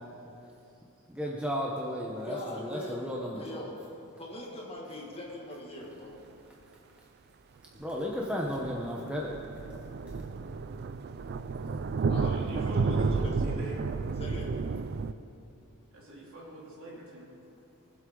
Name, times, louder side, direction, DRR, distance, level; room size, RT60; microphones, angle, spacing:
voice 1, 1.1-3.7 7.7-9.3, equal, 5° right, -3 dB, 0.9 m, -34 dB
voice 2, 2.2-3.0 3.3-3.8 4.2-6.2 12.0-13.4 14.2-14.5 16.9-17.0, left 1 dB, 25° left, -3 dB, 2.1 m, -41 dB
sound 1, 8.0-8.1 8.5-15.1, right 4 dB, 50° right, 0.4 m, -31 dB
voice 3, 12.2-13.9 15.9-17.3, right 1 dB, 65° right, -5 dB, 3.2 m, -43 dB
23.0 x 7.8 x 3.9 m, 2.8 s
head